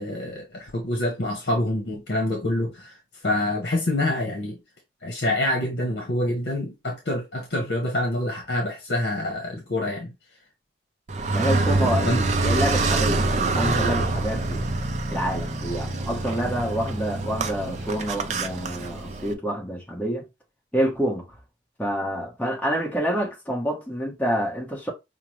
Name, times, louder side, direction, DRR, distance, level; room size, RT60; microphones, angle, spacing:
voice 1, 0.0-3.0 3.2-4.6 5.0-10.1 12.0-12.2, left 1 dB, 65° left, 0.9 m, -26 dB
Car, 11.1-19.3, right 3 dB, 40° right, 0.5 m, -25 dB
voice 2, 11.3-14.7 15.1-20.3 20.7-21.3 21.8-24.9, equal, 10° left, 1.1 m, -27 dB
5.6 x 2.1 x 3.1 m
head